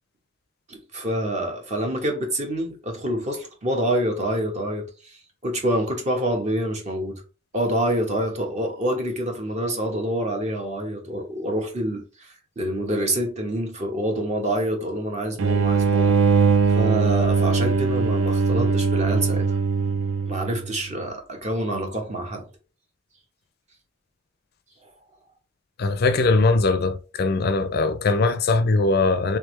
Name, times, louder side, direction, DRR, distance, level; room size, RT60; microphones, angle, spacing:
voice 1, 0.7-7.2 7.5-16.2 16.7-19.5 20.3-22.5, right 1 dB, 35° right, 1.0 m, -27 dB
sound 1, 15.4-20.8, right 5 dB, 90° right, 0.4 m, -21 dB
voice 2, 25.8-29.4, left 3 dB, 55° left, 0.4 m, -21 dB
3.4 x 3.4 x 3.2 m
head